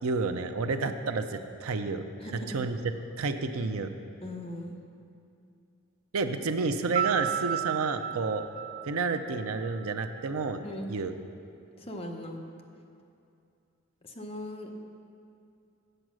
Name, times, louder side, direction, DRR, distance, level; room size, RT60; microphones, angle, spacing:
voice 1, 0.0-2.0 2.5-2.8 3.2-3.9 6.1-8.4 8.9-10.6 10.9-11.1, right 4 dB, 80° right, 8 dB, 0.5 m, -30 dB
voice 2, 2.2-2.6 4.2-4.7 10.6-11.0 11.8-12.4 14.0-14.7, left 1 dB, 25° left, 2 dB, 0.7 m, -39 dB
Piano, 6.9-9.8, right 9 dB, 35° right, 0.5 m, -32 dB
8.1 x 7.7 x 6.1 m, 2.5 s
head